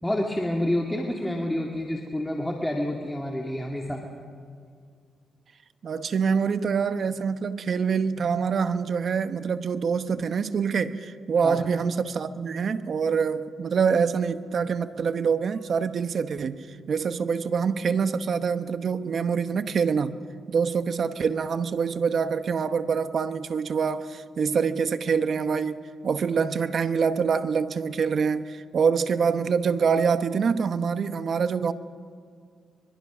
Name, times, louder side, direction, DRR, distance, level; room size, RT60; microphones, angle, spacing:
voice 1, 0.0-4.0 11.4-11.6, left 1 dB, 5° left, 2.1 m, -28 dB
voice 2, 5.8-20.2 20.5-31.7, right 6 dB, 55° right, 1.0 m, -25 dB
24.5 x 23.0 x 6.2 m
cardioid pair, 100°, 0 cm